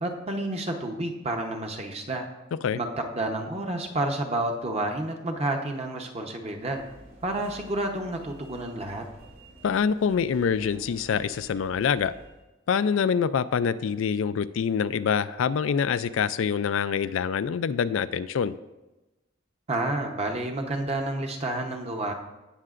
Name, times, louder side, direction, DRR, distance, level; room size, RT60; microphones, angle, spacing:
voice 1, 0.0-2.3 2.7-6.8 7.2-9.1 19.7-22.1, right 2 dB, 30° right, 3 dB, 0.9 m, -30 dB
sound 1, 6.5-12.4, right 1 dB, 85° right, 2.0 m, -51 dB
voice 2, 9.6-12.1 12.7-18.5, left 6 dB, 80° left, 13 dB, 0.4 m, -25 dB
17.5 x 6.7 x 2.5 m, 1.0 s
head